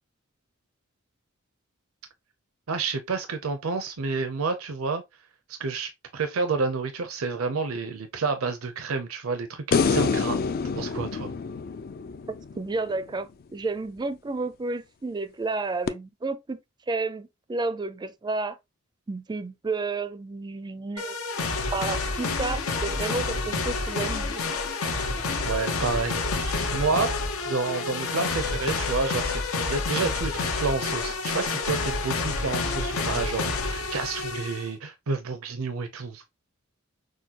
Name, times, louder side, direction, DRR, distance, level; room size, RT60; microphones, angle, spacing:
voice 1, 2.7-5.0 5.5-10.4 10.7-11.3 25.4-27.1 27.5-36.2, right 4 dB, 85° right, 0.6 m, -29 dB
sound 1, 9.7-13.0 15.9-16.0, left 5 dB, 45° left, 0.3 m, -27 dB
voice 2, 12.3-16.6 16.9-18.6 19.1-21.2 21.7-24.4, right 3 dB, 20° right, 0.4 m, -31 dB
sound 2, 21.0-34.7, left 3 dB, 85° left, 0.9 m, -29 dB
6.3 x 2.2 x 2.8 m
head